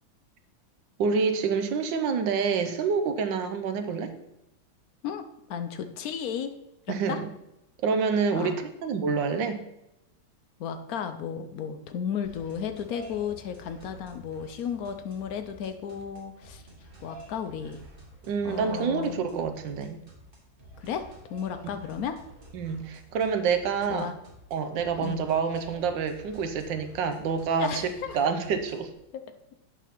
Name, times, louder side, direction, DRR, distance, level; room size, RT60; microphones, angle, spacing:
voice 1, 1.0-4.1 6.9-7.3 7.8-9.6 18.3-20.0 22.5-24.1 24.5-28.9, right 5 dB, 70° right, 7 dB, 1.4 m, -27 dB
voice 2, 5.5-6.5 6.9-7.2 8.3-8.6 10.6-16.6 17.0-17.8 18.4-19.2 20.8-22.2 23.9-24.1 25.0-25.2 27.6-28.2 29.1-29.2, left 7 dB, 70° left, 8 dB, 0.8 m, -34 dB
sound 1, 12.2-28.9, right 1 dB, 30° right, 1.6 m, -50 dB
8.3 x 4.1 x 5.8 m, 0.87 s
omnidirectional pair, 2.2 m